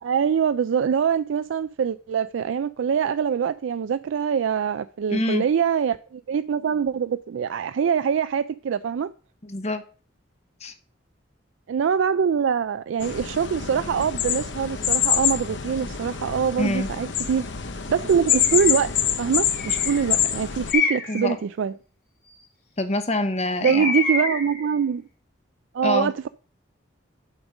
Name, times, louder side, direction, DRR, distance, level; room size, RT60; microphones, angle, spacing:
voice 1, 0.0-9.1 11.7-17.5 17.9-18.9 19.2-21.7 23.6-25.0 25.7-26.3, right 7 dB, 85° right, 0.3 m, -24 dB
voice 2, 5.1-5.4 9.4-9.8 10.6-10.7 16.6-16.9 21.1-21.4 22.8-23.9 25.8-26.1, left 2 dB, 35° left, 1.0 m, -25 dB
sound 1, 13.0-20.7, left 9 dB, 70° left, 0.8 m, -26 dB
Bird, 18.3-18.7 19.5-20.1 20.7-21.3 23.6-24.6, left 4 dB, 50° left, 3.8 m, -27 dB
8.9 x 5.1 x 6.1 m
head